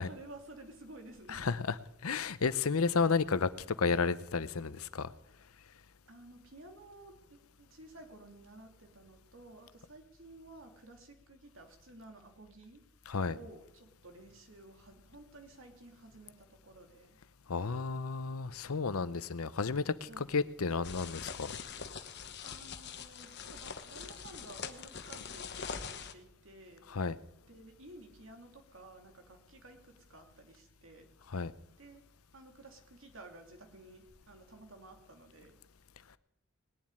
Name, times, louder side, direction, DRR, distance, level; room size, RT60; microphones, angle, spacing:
voice 1, 0.0-1.5 6.1-12.9 13.3-17.2 20.0-20.4 22.4-26.9 27.5-31.1 31.8-32.0 32.3-35.6, right 2 dB, 65° right, 4 dB, 2.7 m, -53 dB
voice 2, 1.3-1.7 2.0-3.5 3.8-5.1 13.1-13.4 17.5-21.5 26.9-27.1 31.3-31.5, left 4 dB, 80° left, 15 dB, 0.8 m, -32 dB
sound 1, 20.8-26.1, left 6 dB, 50° left, 1.1 m, -43 dB
19.5 x 7.4 x 9.8 m, 0.80 s
head